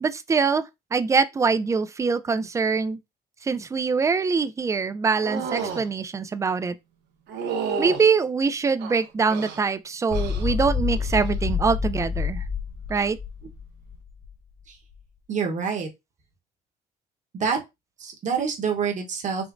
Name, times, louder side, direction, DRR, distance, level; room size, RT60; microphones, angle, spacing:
voice 1, 0.0-3.0 3.4-6.8 7.8-12.4 12.9-13.2, right 5 dB, 20° right, 0.3 m, -24 dB
sound 1, 5.2-5.9 7.3-8.0 8.8-9.6 10.1-10.5 10.9-11.3 12.9-13.1, right 6 dB, 85° right, 0.9 m, -31 dB
sound 2, 10.1-14.3, left 6 dB, 70° left, 1.3 m, -28 dB
voice 2, 15.3-15.9 17.3-17.6 18.0-19.5, right 6 dB, 45° right, 1.0 m, -27 dB
5.0 x 2.0 x 2.5 m
cardioid pair, 110°, 17 cm